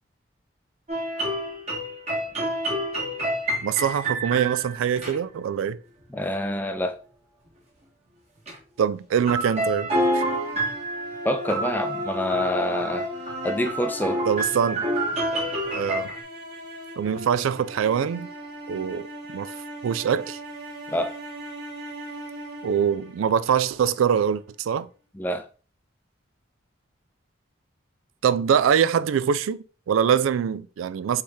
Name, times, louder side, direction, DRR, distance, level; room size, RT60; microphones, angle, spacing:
sound 1, 0.9-5.2 8.5-8.6 9.3-16.2, right 1 dB, 30° right, 1.3 m, -28 dB
voice 1, 3.6-5.8 8.8-9.9 10.1-10.2 14.3-14.8 15.7-16.1 17.0-18.3 18.7-19.1 19.3-19.5 19.8-20.4 22.6-24.9 28.2-31.2, right 8 dB, 90° right, 0.3 m, -23 dB
voice 2, 6.1-7.0 11.2-13.1 13.4-14.2 20.9-21.1 25.1-25.4, left 1 dB, 10° left, 0.4 m, -26 dB
sound 2, 9.8-23.9, equal, 50° right, 1.1 m, -37 dB
4.4 x 3.2 x 3.5 m
head